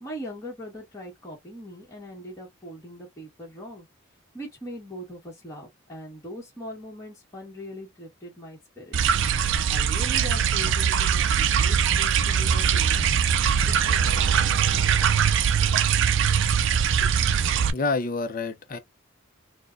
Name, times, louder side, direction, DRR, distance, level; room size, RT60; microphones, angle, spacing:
voice 1, 0.0-3.9 4.3-9.1 9.7-13.1 13.6-14.4 17.0-17.1, equal, 15° left, 1.3 m, -40 dB
sound 1, 8.9-17.7, right 7 dB, 60° right, 0.4 m, -22 dB
voice 2, 17.7-18.8, left 3 dB, 40° left, 0.6 m, -28 dB
4.4 x 2.2 x 2.5 m
head